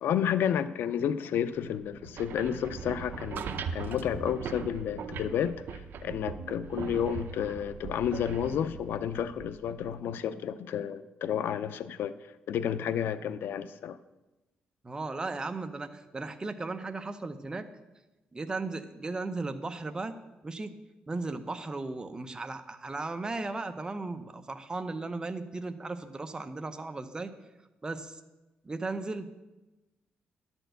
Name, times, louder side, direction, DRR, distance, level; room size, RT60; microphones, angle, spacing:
voice 1, 0.0-12.1 12.5-14.0, left 9 dB, 80° left, 13 dB, 0.4 m, -31 dB
sound 1, 1.9-9.9, right 6 dB, 65° right, 0.6 m, -40 dB
voice 2, 14.8-17.7 18.3-20.2 20.4-20.7 21.1-27.3 27.8-28.2 28.6-29.3, right 3 dB, 20° right, 8 dB, 0.7 m, -36 dB
11.0 x 4.4 x 8.0 m, 1.0 s
cardioid pair, 105°, 4 cm